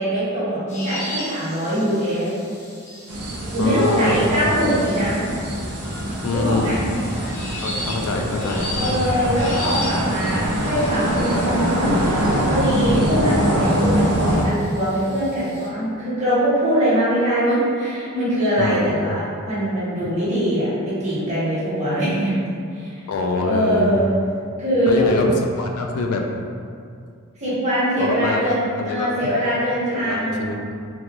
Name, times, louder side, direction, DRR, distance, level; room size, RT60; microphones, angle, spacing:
voice 1, 0.0-2.3 3.5-5.2 6.3-6.8 8.8-12.1 12.4-22.3 22.7-23.0 23.5-24.1 24.6-25.2 27.4-30.5, equal, 30° right, -10 dB, 1.2 m, -22 dB
sound 1, 0.7-15.7, left 1 dB, 35° left, 0.7 m, -37 dB
sound 2, 3.1-14.4, equal, 85° right, 0.6 m, -23 dB
sound 3, 3.3-10.9, equal, 90° left, 1.5 m, -40 dB
voice 2, 3.6-4.4 6.2-6.8 7.6-9.0 18.6-18.9 20.0-20.1 23.1-24.0 24.9-26.5 28.0-28.4 28.8-29.1 29.9-30.7, left 2 dB, 70° left, 2 dB, 0.3 m, -24 dB
3.8 x 2.2 x 2.9 m, 2.3 s
head